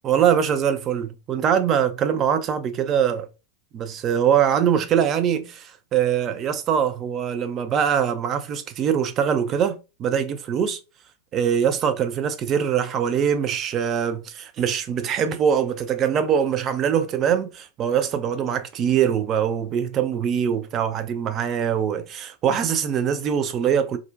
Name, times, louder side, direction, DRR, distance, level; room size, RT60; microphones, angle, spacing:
voice 1, 0.0-3.3 3.7-10.8 11.3-24.0, right 8 dB, 30° right, 0.3 m, -23 dB
2.4 x 2.1 x 2.4 m
figure-of-eight pair, 90°, 0 cm